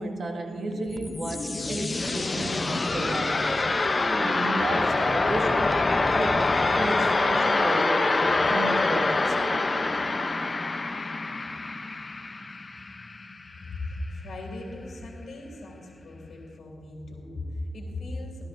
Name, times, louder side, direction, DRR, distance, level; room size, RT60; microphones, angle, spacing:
voice 1, 0.0-5.5 6.1-9.9, right 2 dB, 55° right, 1 dB, 1.9 m, -33 dB
sound 1, 0.9-13.6, left 3 dB, 35° left, 0.7 m, -25 dB
voice 2, 13.7-18.5, left 2 dB, 65° left, -2 dB, 2.8 m, -37 dB
19.5 x 12.5 x 2.6 m, 2.3 s
cardioid pair, 55°, 0 cm